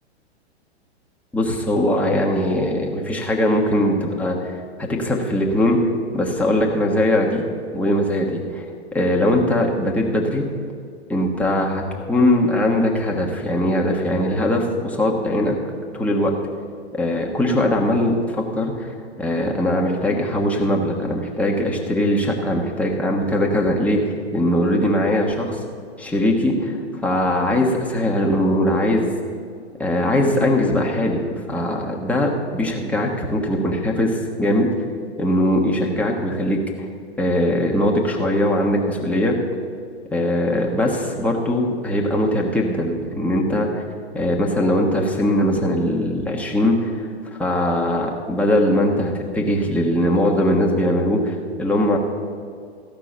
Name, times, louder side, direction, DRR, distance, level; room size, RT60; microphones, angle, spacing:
voice 1, 1.3-5.8 6.1-7.4 7.7-8.6 8.9-10.4 11.1-15.5 15.9-16.3 16.9-25.6 26.0-26.8 27.0-29.1 29.8-31.2 31.5-34.7 35.2-36.9 37.2-39.4 40.1-43.8 44.1-47.1 47.4-52.0, left 1 dB, 5° left, -1 dB, 1.3 m, -21 dB
14.0 x 6.1 x 7.9 m, 2.2 s
figure-of-eight pair, 110°, 34 cm